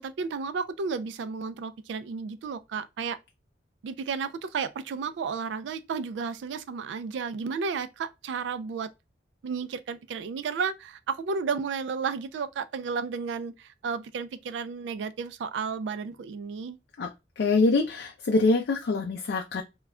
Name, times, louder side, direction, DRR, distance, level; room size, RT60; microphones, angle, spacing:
voice 1, 0.0-3.2 3.8-8.9 9.4-16.8, right 5 dB, 90° right, 0.3 m, -32 dB
voice 2, 17.4-19.6, left 3 dB, 70° left, 0.4 m, -24 dB
2.3 x 2.1 x 3.5 m
head